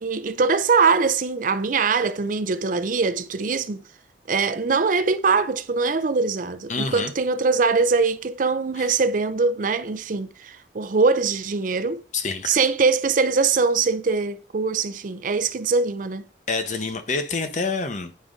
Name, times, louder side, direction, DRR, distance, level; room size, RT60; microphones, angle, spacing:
voice 1, 0.0-3.8 4.3-12.0 12.4-16.2, right 4 dB, 50° right, 0.5 m, -22 dB
voice 2, 6.7-7.1 8.8-8.9 12.1-12.6 16.5-18.1, left 4 dB, 45° left, 0.8 m, -27 dB
9.3 x 5.0 x 3.7 m
head